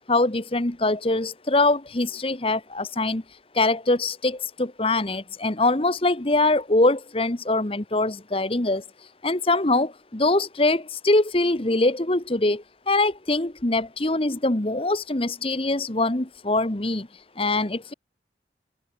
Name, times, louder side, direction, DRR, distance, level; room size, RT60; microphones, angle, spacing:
voice 1, 0.1-3.2 3.5-8.8 9.2-17.1 17.4-17.9, left 2 dB, 30° left, 1.3 m, -23 dB
head